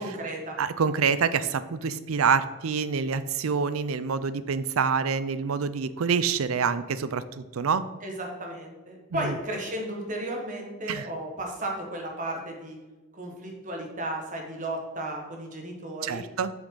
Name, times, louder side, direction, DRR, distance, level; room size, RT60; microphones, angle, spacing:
voice 1, 0.0-0.6 8.0-12.8 13.1-16.2, right 1 dB, 40° right, 1 dB, 1.5 m, -34 dB
voice 2, 0.6-7.9 9.1-9.4 10.9-11.1 16.0-16.5, right 6 dB, 85° right, 14 dB, 0.5 m, -26 dB
8.0 x 6.3 x 3.9 m, 1.1 s
head